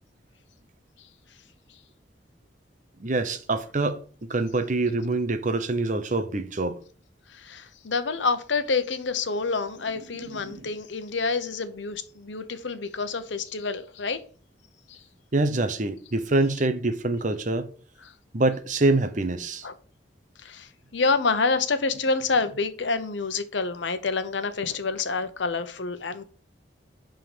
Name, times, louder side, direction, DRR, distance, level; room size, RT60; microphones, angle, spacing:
voice 1, 3.0-6.8 10.3-10.7 15.3-17.7 18.3-19.7, right 2 dB, 45° right, 0.8 m, -25 dB
voice 2, 7.3-14.2 14.9-15.0 19.6-19.7 20.4-26.2, left 4 dB, 80° left, 0.9 m, -28 dB
11.0 x 3.9 x 5.0 m
head